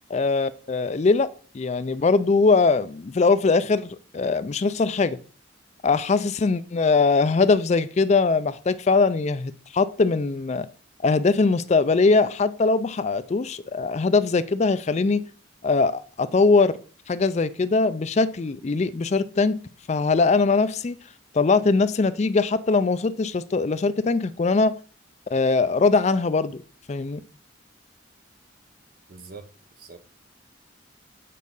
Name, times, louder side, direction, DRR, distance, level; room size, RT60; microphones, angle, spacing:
voice 1, 0.1-1.3 1.5-5.2 5.8-10.7 11.0-15.2 15.6-16.8 17.1-19.6 19.9-20.9 21.3-24.7 25.3-26.6 26.9-27.2, left 4 dB, 35° left, 0.4 m, -21 dB
voice 2, 29.1-29.5 29.8-30.0, right 4 dB, 50° right, 0.9 m, -42 dB
8.4 x 4.7 x 5.4 m
head